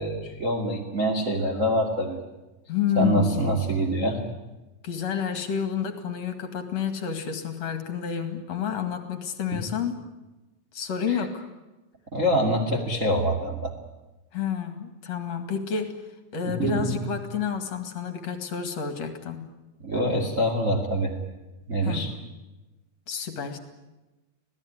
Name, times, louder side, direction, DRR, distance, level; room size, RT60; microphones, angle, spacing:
voice 1, 0.0-2.2 3.0-4.2 9.5-9.6 11.1-11.2 12.1-13.7 16.5-17.0 19.8-21.1 21.7-22.1, equal, 25° right, 1 dB, 1.9 m, -25 dB
voice 2, 2.7-3.5 4.8-10.0 10.7-11.4 14.3-15.9 16.3-19.5 21.8-22.1 23.1-23.6, left 7 dB, 45° left, 8 dB, 2.6 m, -29 dB
26.5 x 17.5 x 10.0 m, 1.1 s
omnidirectional pair, 5.1 m